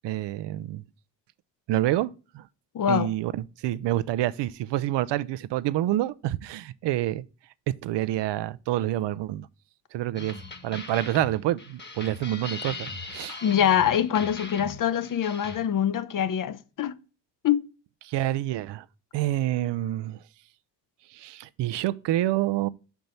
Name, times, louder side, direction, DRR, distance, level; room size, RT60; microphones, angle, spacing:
voice 1, 0.0-0.8 1.7-2.5 2.9-7.2 7.8-9.5 9.9-10.4 10.6-13.4 18.0-18.9 19.1-20.2 21.1-22.7, right 14 dB, 75° right, 0.5 m, -27 dB
voice 2, 2.7-3.1 13.4-17.0 17.4-17.6, left 9 dB, 50° left, 0.6 m, -24 dB
sound 1, 10.2-15.6, left 3 dB, 25° left, 1.3 m, -40 dB
5.2 x 4.6 x 5.4 m
cardioid pair, 95°, 42 cm